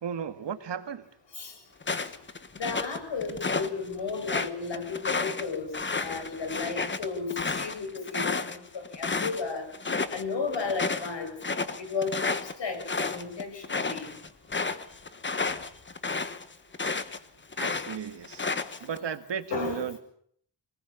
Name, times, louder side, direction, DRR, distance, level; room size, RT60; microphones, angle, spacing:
voice 1, 0.0-1.1 17.6-18.5 18.8-20.0, right 7 dB, 85° right, 10 dB, 1.9 m, -35 dB
sound 1, 1.8-3.7 4.1-9.4 9.7-10.2 10.5-17.2 17.5-19.0, left 4 dB, 25° left, 1.3 m, -31 dB
voice 2, 2.6-5.7 6.0-9.6 10.1-11.3 11.8-14.1 18.6-18.7 19.5-19.8, left 4 dB, 90° left, 5 dB, 7.4 m, -34 dB
26.0 x 19.0 x 7.1 m, 0.64 s
wide cardioid pair, 170°, 42 cm